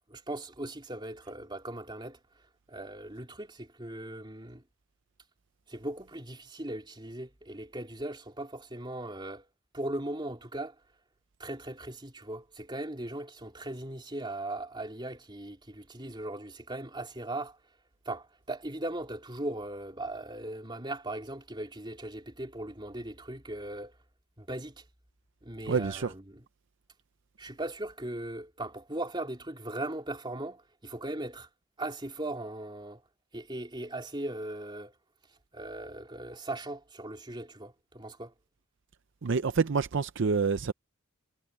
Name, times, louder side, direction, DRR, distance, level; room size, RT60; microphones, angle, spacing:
voice 1, 0.1-2.2 2.7-4.6 5.7-9.4 9.7-10.7 11.4-17.6 18.0-23.9 24.4-24.8 25.4-26.4 27.4-31.5 31.8-33.0 33.3-34.9 35.5-38.3, right 1 dB, 20° right, 3.2 m, -38 dB
voice 2, 25.7-26.1 39.2-40.7, right 5 dB, 55° right, 0.5 m, -27 dB
head